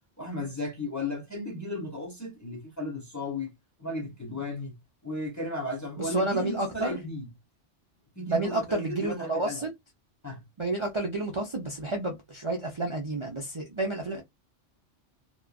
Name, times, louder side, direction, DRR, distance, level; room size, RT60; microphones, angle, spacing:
voice 1, 0.2-3.5 3.8-4.8 5.0-7.3 8.2-9.6 10.2-10.4, left 1 dB, 20° left, 0.7 m, -35 dB
voice 2, 6.0-7.0 8.3-9.7 10.6-14.2, right 2 dB, 35° right, 0.5 m, -30 dB
2.8 x 2.3 x 2.3 m
omnidirectional pair, 1.2 m